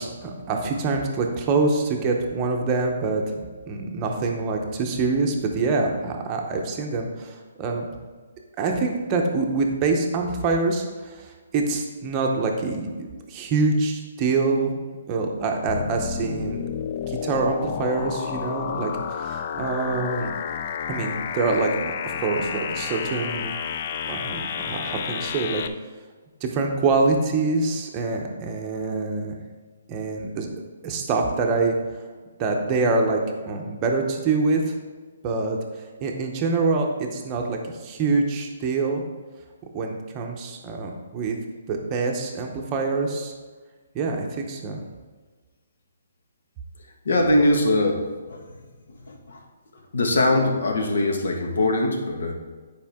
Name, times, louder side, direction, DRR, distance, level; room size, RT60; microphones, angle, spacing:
voice 1, 0.0-7.9 8.6-14.7 15.1-16.6 17.1-20.3 20.9-21.9 22.2-23.5 24.1-25.6 26.4-29.3 29.9-30.5 30.8-31.7 32.4-34.7 35.2-35.6 36.0-39.0 39.7-41.4 41.7-43.3 43.9-44.8, right 3 dB, 15° right, 1 dB, 0.7 m, -25 dB
sound 1, 15.7-25.7, left 8 dB, 30° left, 0.3 m, -31 dB
voice 2, 47.0-48.5 49.1-49.4 49.9-52.3, left 1 dB, 80° left, 2 dB, 1.6 m, -22 dB
10.0 x 4.9 x 3.6 m, 1.4 s
hypercardioid pair, 175°, 0 cm